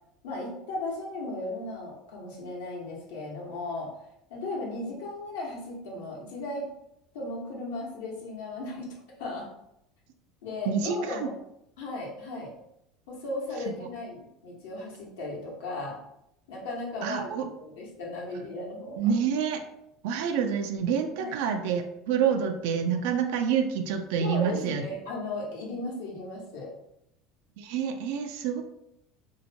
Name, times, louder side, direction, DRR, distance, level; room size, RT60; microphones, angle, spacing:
voice 1, 0.2-3.9 4.3-6.7 7.1-8.9 9.2-9.5 10.4-11.3 11.8-12.5 13.1-16.0 16.5-17.3 17.6-19.0 21.2-21.3 24.2-26.7, left 2 dB, 85° left, -3 dB, 0.9 m, -36 dB
voice 2, 10.7-11.3 13.8-13.9 17.0-17.5 19.0-19.6 20.0-24.8 27.6-28.6, right 7 dB, 75° right, 6 dB, 0.3 m, -27 dB
2.8 x 2.1 x 2.7 m, 0.80 s
supercardioid pair, 110°, 0 cm